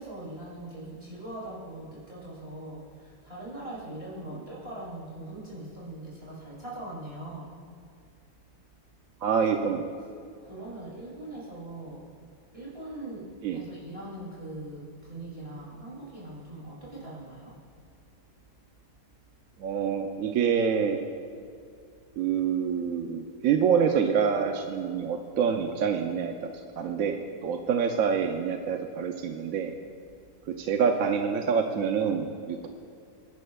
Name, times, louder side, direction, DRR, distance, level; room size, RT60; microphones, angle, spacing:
voice 1, 0.0-7.5 10.4-12.1 12.5-17.6, right 1 dB, 35° right, -7 dB, 3.0 m, -41 dB
voice 2, 9.2-9.9 13.4-13.6 19.6-21.0 22.2-26.5 26.8-29.7 30.5-32.7, right 6 dB, 65° right, 4 dB, 1.0 m, -26 dB
22.0 x 10.5 x 2.3 m, 2.3 s
omnidirectional pair, 1.8 m